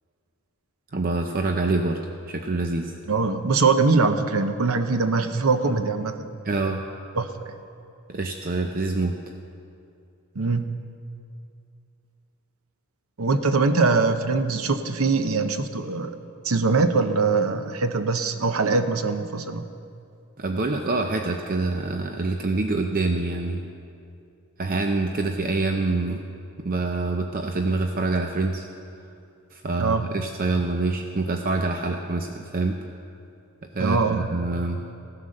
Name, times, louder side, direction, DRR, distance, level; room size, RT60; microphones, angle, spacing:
voice 1, 0.9-2.0 2.3-2.9 6.4-6.8 8.1-9.2 20.4-23.6 24.6-26.2 26.6-28.7 29.5-32.8 33.7-34.9, right 3 dB, 45° right, 4 dB, 0.7 m, -26 dB
voice 2, 3.1-6.6 7.1-7.5 10.4-10.6 13.2-16.2 16.4-19.7 29.8-30.0 33.8-34.3, right 4 dB, 90° right, 9 dB, 0.8 m, -22 dB
16.0 x 9.6 x 6.5 m, 2.5 s
head